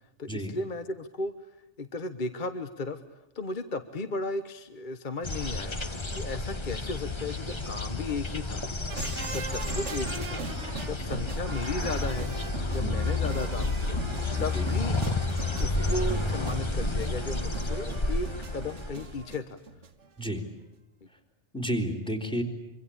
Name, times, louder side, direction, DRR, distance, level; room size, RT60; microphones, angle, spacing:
voice 1, 0.2-1.3 1.8-3.0 3.3-5.8 6.1-8.6 9.3-10.4 10.8-12.3 12.7-14.0 14.4-15.0 15.6-19.6, left 2 dB, 40° left, 10 dB, 1.3 m, -35 dB
sound 1, 5.2-19.3, left 2 dB, 25° left, 1.2 m, -31 dB
sound 2, 8.9-20.1 20.4-20.5, right 4 dB, 70° right, 1.6 m, -40 dB
voice 2, 21.5-22.4, equal, 5° left, 5 dB, 3.6 m, -31 dB
25.5 x 25.0 x 8.6 m, 0.94 s
omnidirectional pair, 1.3 m